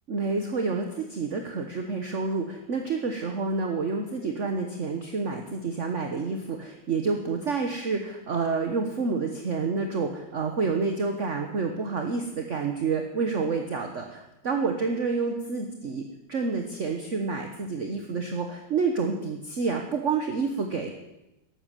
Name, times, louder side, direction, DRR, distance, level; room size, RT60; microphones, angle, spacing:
voice 1, 0.1-16.0 16.3-20.9, right 4 dB, 45° right, 4 dB, 1.4 m, -29 dB
13.5 x 12.0 x 7.6 m, 0.93 s
omnidirectional pair, 2.0 m